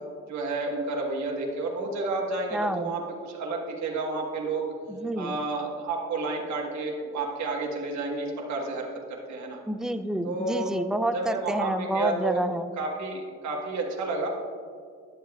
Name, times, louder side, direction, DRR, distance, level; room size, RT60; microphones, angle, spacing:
voice 1, 0.3-4.7 5.2-9.6 10.2-10.7 11.1-12.5 12.8-14.3, right 3 dB, 65° right, -1 dB, 1.3 m, -31 dB
voice 2, 2.5-2.9 4.9-5.4 9.7-12.7, right 1 dB, ahead, 9 dB, 0.4 m, -29 dB
11.0 x 7.5 x 2.3 m, 2.1 s
cardioid pair, 90°, 30 cm